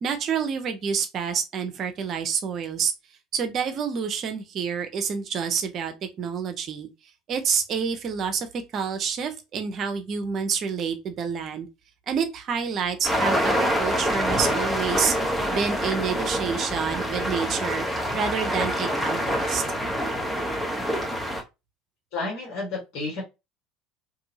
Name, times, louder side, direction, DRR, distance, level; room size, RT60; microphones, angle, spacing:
voice 1, 0.0-2.9 3.3-6.9 7.3-8.5 8.7-11.7 12.1-15.1 15.5-17.9 18.1-19.6, right 6 dB, 50° right, 0.7 m, -28 dB
sound 1, 13.0-21.4, equal, 5° left, 0.9 m, -26 dB
voice 2, 22.1-23.2, left 3 dB, 65° left, 1.5 m, -31 dB
2.7 x 2.6 x 2.8 m
hypercardioid pair, 70°, 0 cm